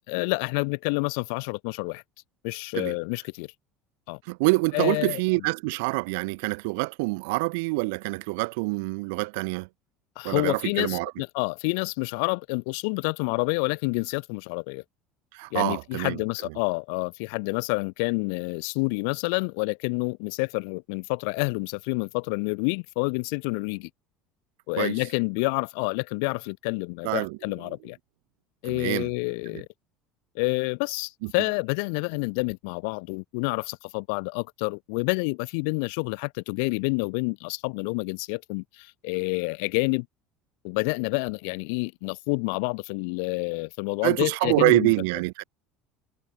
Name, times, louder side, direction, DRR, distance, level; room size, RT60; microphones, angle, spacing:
voice 1, 0.1-2.0 2.4-3.5 4.1-4.2 4.7-5.2 10.2-14.8 15.5-23.9 24.7-28.0 28.6-29.7 30.3-40.1 40.6-44.9, left 36 dB, 80° left, 4.4 m, -28 dB
voice 2, 4.3-9.7 10.2-11.1 15.3-16.2 24.8-25.0 27.0-27.4 28.7-29.1 31.2-31.3 44.0-45.4, right 28 dB, 85° right, 5.3 m, -26 dB
cardioid pair, 145°, 0 cm